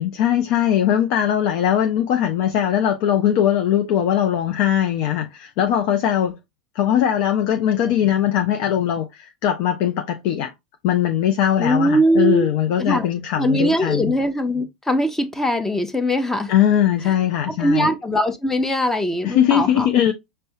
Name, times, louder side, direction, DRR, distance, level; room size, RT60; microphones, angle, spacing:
voice 1, 0.0-6.4 6.8-10.5 10.8-14.1 16.5-17.9 19.2-20.1, left 10 dB, 50° left, 0.5 m, -20 dB
voice 2, 11.6-12.5 12.8-13.1 13.4-16.5 17.6-19.9, equal, 10° left, 0.7 m, -21 dB
5.3 x 2.1 x 2.6 m
hypercardioid pair, 90°, 4 cm